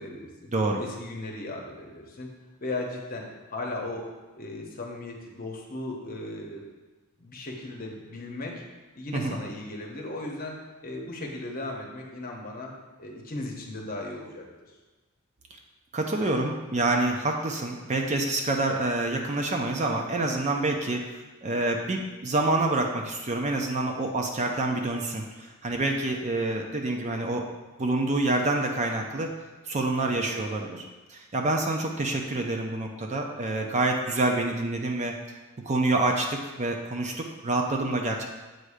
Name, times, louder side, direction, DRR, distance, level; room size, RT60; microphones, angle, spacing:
voice 1, 0.0-0.5 0.8-2.3 2.6-3.2 3.5-4.0 4.3-6.6 7.2-8.5 8.9-10.6 10.8-12.7 13.0-14.4 30.0-30.2, left 2 dB, 40° left, 0 dB, 0.9 m, -36 dB
voice 2, 0.5-0.8 9.1-9.4 15.9-27.5 27.8-29.3 29.7-30.8 31.1-35.1 35.7-38.3, right 2 dB, 30° right, 2 dB, 0.5 m, -27 dB
7.7 x 2.7 x 4.8 m, 1.2 s
head